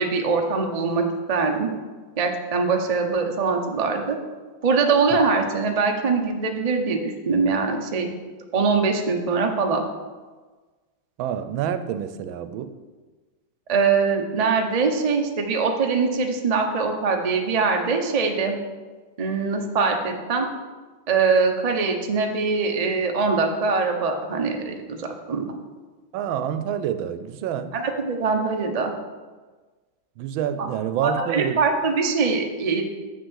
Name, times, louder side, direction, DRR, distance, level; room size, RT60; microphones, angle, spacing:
voice 1, 0.0-1.7 2.2-4.2 4.6-8.1 8.5-9.8 13.7-18.6 19.2-20.5 21.1-25.5 27.7-28.9 30.6-30.7 31.0-32.8, right 4 dB, 50° right, 3 dB, 0.4 m, -22 dB
voice 2, 11.2-12.8 26.1-27.8 30.2-31.6, right 9 dB, 85° right, 11 dB, 1.4 m, -27 dB
6.8 x 6.4 x 6.3 m, 1.3 s
omnidirectional pair, 2.2 m